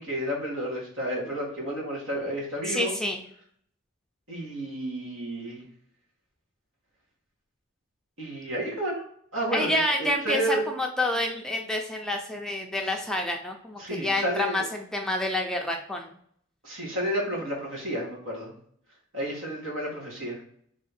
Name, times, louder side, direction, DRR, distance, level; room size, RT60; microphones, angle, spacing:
voice 1, 0.0-2.9 4.3-5.6 8.2-9.0 9.3-10.6 13.8-14.7 16.6-18.5 19.1-20.4, right 1 dB, 75° right, -3 dB, 1.8 m, -31 dB
voice 2, 2.7-3.2 9.5-16.1, left 1 dB, 5° left, 1 dB, 0.4 m, -28 dB
3.6 x 3.2 x 4.2 m, 0.65 s
head